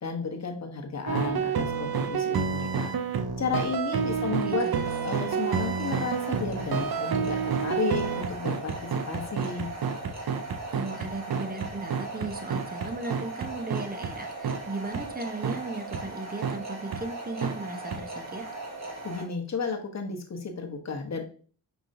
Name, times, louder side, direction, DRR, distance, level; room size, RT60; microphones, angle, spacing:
voice 1, 0.0-2.9 3.4-4.7 5.0-9.7 19.0-21.3, left 4 dB, 40° left, 3 dB, 1.0 m, -33 dB
sound 1, 1.1-14.1 14.4-14.6 14.9-15.0 15.4-15.6 15.9-16.0 16.4-16.6 16.9-17.0 17.4-17.5 17.9-18.0, right 6 dB, 55° right, 0.6 m, -29 dB
sound 2, 3.9-19.2, right 2 dB, 40° right, 1.4 m, -39 dB
voice 2, 4.4-4.9 10.7-18.4, right 3 dB, 20° right, 7 dB, 0.7 m, -36 dB
5.2 x 3.0 x 2.6 m, 0.42 s
cardioid pair, 60°, 43 cm